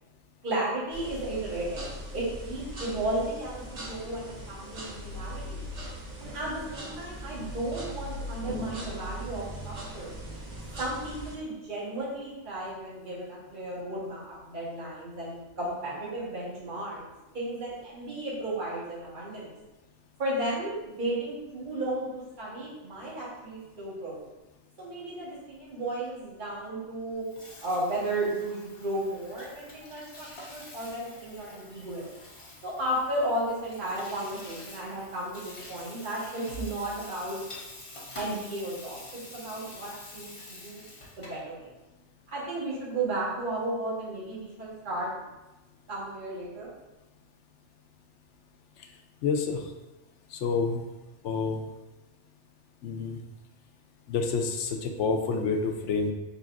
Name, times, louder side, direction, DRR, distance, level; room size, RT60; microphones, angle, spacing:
voice 1, 0.4-5.7 6.2-10.2 10.8-17.0 17.3-19.5 20.2-24.2 24.8-27.2 27.6-32.1 32.6-37.4 38.1-40.9 41.2-41.7 42.3-45.1 45.9-46.7, right 1 dB, 45° right, -7 dB, 1.4 m, -34 dB
sound 1, 0.9-11.3, equal, 90° right, 1.5 m, -39 dB
Water tap faucet / Sink (filling or washing), 27.1-41.5, left 2 dB, 30° left, 0.9 m, -47 dB
voice 2, 49.2-49.6 50.3-50.8 51.2-51.6 52.8-53.2 54.1-56.1, left 4 dB, 90° left, 4 dB, 0.9 m, -28 dB
5.0 x 4.0 x 2.5 m, 1.0 s
omnidirectional pair, 1.2 m